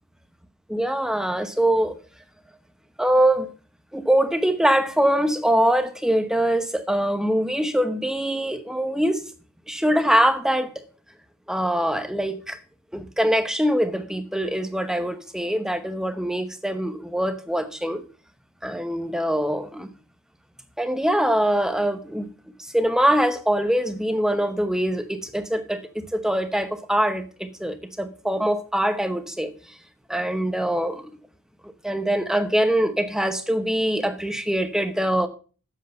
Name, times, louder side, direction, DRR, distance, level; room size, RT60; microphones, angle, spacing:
voice 1, 0.7-2.0 3.0-3.5 3.9-9.2 9.7-10.8 11.5-12.6 12.9-18.0 18.6-19.9 20.8-22.3 22.7-29.5 30.1-31.0 31.8-35.3, right 1 dB, 5° right, 0.9 m, -23 dB
7.9 x 7.4 x 6.4 m
head